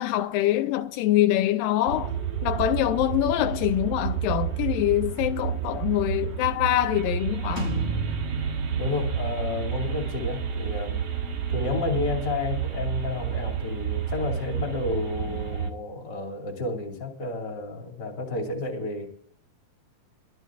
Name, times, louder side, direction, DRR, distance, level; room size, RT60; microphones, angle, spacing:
voice 1, 0.0-2.1 2.4-7.7, left 13 dB, 85° left, 2.4 m, -24 dB
sound 1, 1.9-15.7, right 8 dB, 55° right, 2.2 m, -30 dB
sound 2, 7.6-13.2, right 2 dB, 15° right, 3.9 m, -35 dB
voice 2, 8.7-11.0 11.5-19.1, left 3 dB, 30° left, 3.2 m, -31 dB
22.5 x 14.5 x 2.5 m
omnidirectional pair, 3.9 m